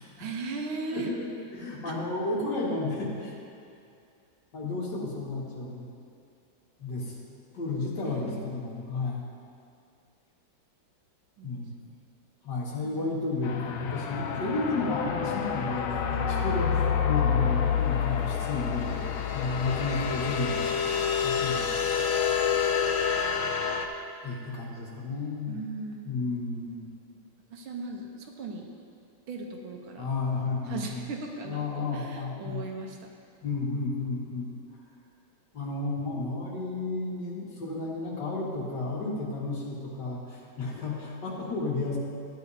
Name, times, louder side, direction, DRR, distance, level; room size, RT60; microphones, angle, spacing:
voice 1, 0.2-1.1 1.9-2.0 8.1-8.4 11.4-11.6 13.0-13.2 14.3-14.5 25.5-26.1 27.2-27.3 27.5-28.7 29.3-30.1 30.7-33.1, right 3 dB, 85° right, 2 dB, 1.7 m, -38 dB
voice 2, 0.9-3.4 4.5-5.9 6.8-7.2 7.5-9.2 11.4-11.8 12.4-19.0 19.3-20.7 21.2-21.7 24.2-25.6 26.0-26.8 30.0-31.0 31.4-32.6 33.4-34.5 35.5-42.0, left 3 dB, 60° left, -5 dB, 2.3 m, -32 dB
sound 1, 13.4-23.9, left 7 dB, 90° left, 1.5 m, -28 dB
14.5 x 8.9 x 2.7 m, 2.5 s
omnidirectional pair, 2.2 m